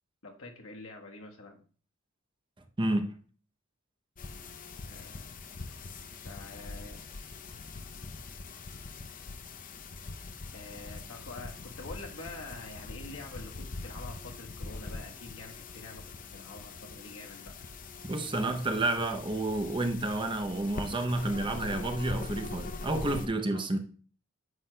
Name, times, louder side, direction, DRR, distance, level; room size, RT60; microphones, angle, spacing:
voice 1, 0.2-1.6 4.8-5.3 6.2-7.0 10.5-17.5 23.5-23.7, left 2 dB, 70° left, 1.3 m, -46 dB
voice 2, 2.8-3.1 18.0-23.8, right 2 dB, 25° right, 0.7 m, -30 dB
sound 1, 4.2-23.3, left 3 dB, 40° left, 0.6 m, -43 dB
9.5 x 7.9 x 2.2 m
head